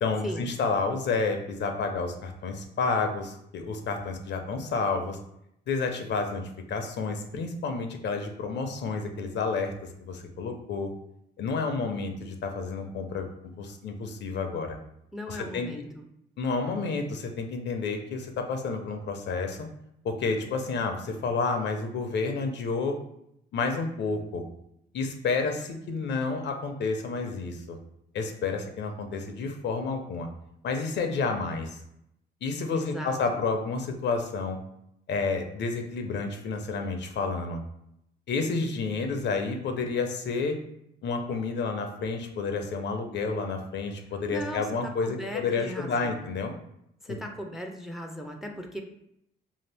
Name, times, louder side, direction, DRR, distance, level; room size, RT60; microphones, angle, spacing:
voice 1, 0.0-5.2 5.7-9.7 10.0-10.9 11.4-13.3 13.6-14.8 15.3-15.7 16.4-19.7 20.0-23.0 23.5-24.4 24.9-27.8 28.1-30.3 30.6-31.8 32.4-34.6 35.1-37.6 38.3-40.6 41.0-46.5, left 4 dB, 60° left, 5 dB, 0.5 m, -30 dB
voice 2, 15.1-16.0 32.7-33.4 44.3-46.3 47.0-48.8, equal, ahead, 4 dB, 0.4 m, -38 dB
2.7 x 2.4 x 3.3 m, 0.77 s
cardioid pair, 90°, 20 cm